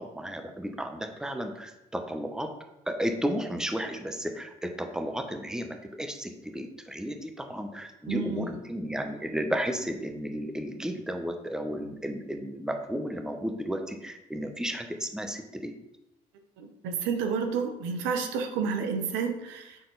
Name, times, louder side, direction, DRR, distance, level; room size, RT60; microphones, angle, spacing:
voice 1, 0.0-2.5 2.9-15.7, equal, 5° right, 5 dB, 0.9 m, -33 dB
voice 2, 8.1-8.5 16.6-19.8, right 5 dB, 80° right, 5 dB, 0.9 m, -30 dB
6.8 x 3.8 x 4.0 m, 0.91 s
supercardioid pair, 65°, 18 cm